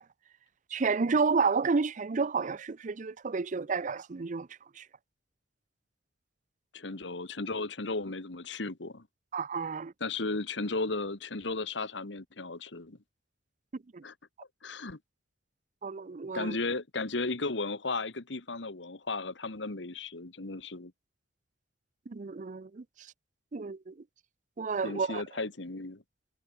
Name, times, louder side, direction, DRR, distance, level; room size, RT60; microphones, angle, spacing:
voice 1, 0.7-4.5 4.8-4.9 9.3-9.9 13.9-14.0 15.8-16.6 22.1-23.1 23.5-23.9 24.6-25.2, right 4 dB, 45° right, 0.5 m, -30 dB
voice 2, 6.7-9.1 10.0-13.0 14.0-14.1 14.6-15.0 16.3-20.9 24.8-26.0, left 3 dB, 80° left, 1.6 m, -35 dB
head